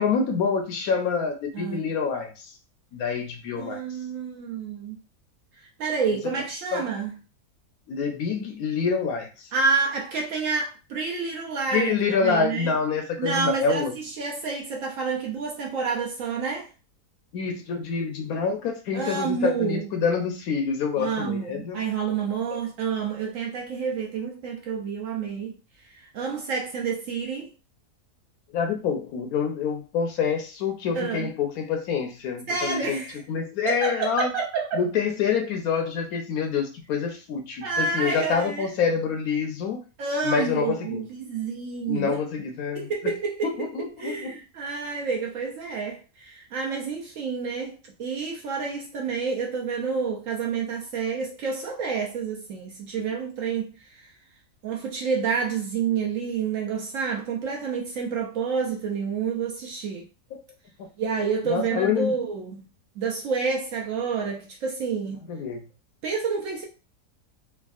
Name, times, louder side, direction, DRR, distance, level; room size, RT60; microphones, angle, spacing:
voice 1, 0.0-2.5 2.9-3.8 6.7-6.8 7.9-9.5 11.7-13.9 17.3-21.8 22.5-22.6 28.5-33.0 33.3-34.3 34.7-39.8 40.2-41.0 41.9-42.9 43.4-44.3 60.3-60.4 60.8-60.9 61.4-62.1 65.3-65.6, left 6 dB, 70° left, 1.0 m, -26 dB
voice 2, 1.5-1.9 3.6-5.0 5.8-7.1 9.5-11.9 12.2-12.7 13.2-16.7 18.9-19.9 21.0-25.6 25.9-27.5 31.0-31.3 32.5-33.2 33.6-34.8 37.6-38.8 40.0-42.2 42.7-43.7 44.0-54.1 54.6-60.0 61.0-62.7 63.0-65.3 66.0-66.7, right 5 dB, 65° right, 0.8 m, -29 dB
3.4 x 2.1 x 2.3 m
omnidirectional pair, 1.7 m